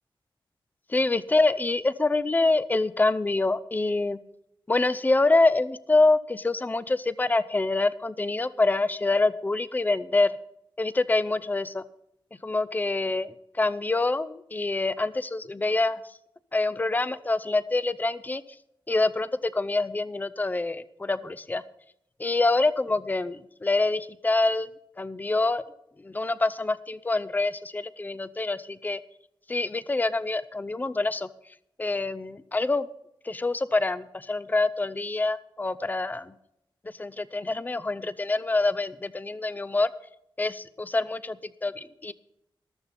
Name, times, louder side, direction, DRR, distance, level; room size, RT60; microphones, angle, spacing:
voice 1, 0.9-4.2 4.7-10.4 10.8-11.8 12.4-16.0 16.5-18.4 18.9-21.6 22.2-24.7 25.0-25.6 26.0-29.0 29.5-31.3 31.8-32.9 33.2-36.3 36.8-39.9 40.4-42.1, left 2 dB, 20° left, 16 dB, 0.5 m, -26 dB
14.0 x 13.0 x 4.2 m, 0.77 s
wide cardioid pair, 180°, 9 cm